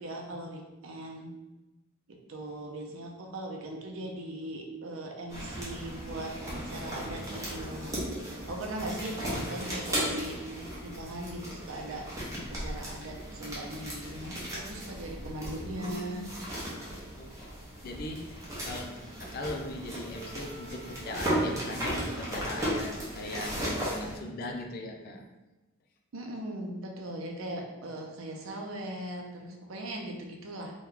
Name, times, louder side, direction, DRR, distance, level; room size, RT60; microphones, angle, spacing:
voice 1, 0.0-1.3 2.1-8.0 8.5-12.1 12.5-16.2 26.1-30.7, right 1 dB, 75° right, 1 dB, 0.5 m, -39 dB
sound 1, 5.3-24.2, equal, 15° right, 0.8 m, -36 dB
voice 2, 15.6-16.4 17.1-17.4 17.8-25.3, left 2 dB, 45° left, 3 dB, 0.4 m, -40 dB
3.0 x 2.3 x 3.6 m, 1.1 s
head